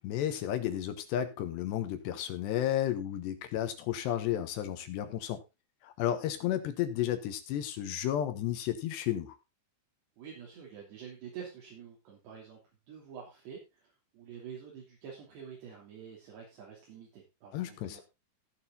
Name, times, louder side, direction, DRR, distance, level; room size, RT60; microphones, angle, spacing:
voice 1, 0.0-5.4 5.8-9.4 17.5-18.0, left 11 dB, 75° left, 3.1 m, -32 dB
voice 2, 10.2-12.6 12.9-18.0, right 7 dB, 65° right, 5.0 m, -47 dB
16.0 x 6.8 x 3.9 m
omnidirectional pair, 5.3 m